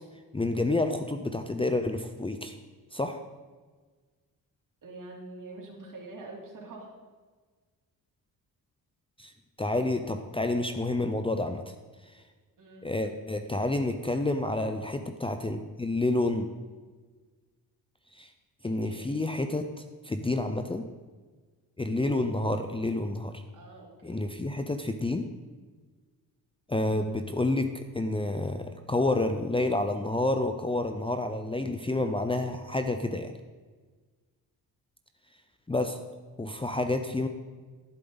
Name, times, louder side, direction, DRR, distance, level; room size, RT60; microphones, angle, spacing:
voice 1, 0.3-2.5 2.9-3.2 9.2-9.3 9.6-11.6 12.8-16.5 18.1-18.3 18.6-19.7 20.0-20.8 21.8-23.4 24.0-25.2 26.7-33.3 35.7-36.0 36.4-37.3, left 2 dB, 15° left, 7 dB, 0.6 m, -29 dB
voice 2, 4.8-6.9 12.6-12.9 18.6-19.1 21.9-22.1 23.5-24.2, right 2 dB, 55° right, -1 dB, 3.1 m, -45 dB
11.5 x 11.0 x 4.0 m, 1.4 s
cardioid pair, 95°, 38 cm